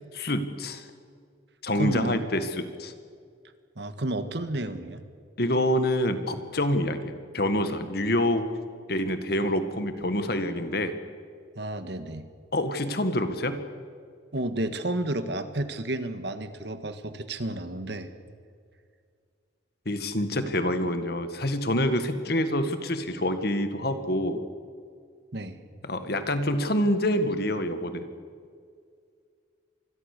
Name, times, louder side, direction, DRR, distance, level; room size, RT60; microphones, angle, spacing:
voice 1, 0.2-0.9 1.6-2.9 5.4-8.5 8.9-10.9 12.5-13.6 19.9-24.4 25.8-28.1, left 1 dB, 55° left, 9 dB, 1.8 m, -27 dB
voice 2, 1.7-2.2 3.8-5.0 11.6-12.3 14.3-18.1 25.3-25.6, right 1 dB, 60° right, 10 dB, 1.7 m, -31 dB
26.0 x 21.5 x 6.8 m, 2.2 s
head